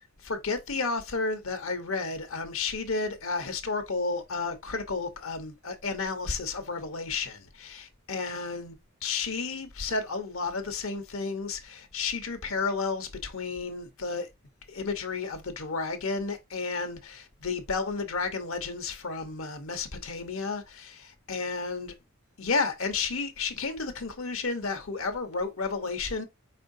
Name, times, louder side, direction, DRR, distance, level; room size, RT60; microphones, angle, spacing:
voice 1, 0.2-8.8 9.0-14.3 14.7-21.9 22.4-26.3, left 4 dB, 75° left, 1.0 m, -32 dB
4.7 x 4.2 x 2.7 m
head